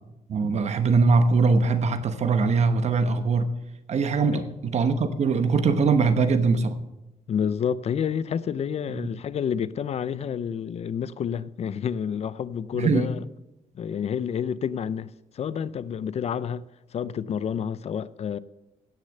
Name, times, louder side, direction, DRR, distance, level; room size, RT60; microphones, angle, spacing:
voice 1, 0.3-3.5 3.9-6.8 8.9-9.1 12.7-13.1, right 4 dB, 55° right, 1.1 m, -22 dB
voice 2, 7.3-13.2 13.7-15.1 15.3-16.6 16.9-18.4, left 8 dB, 50° left, 0.4 m, -29 dB
16.5 x 6.5 x 6.5 m
cardioid pair, 135°, 14 cm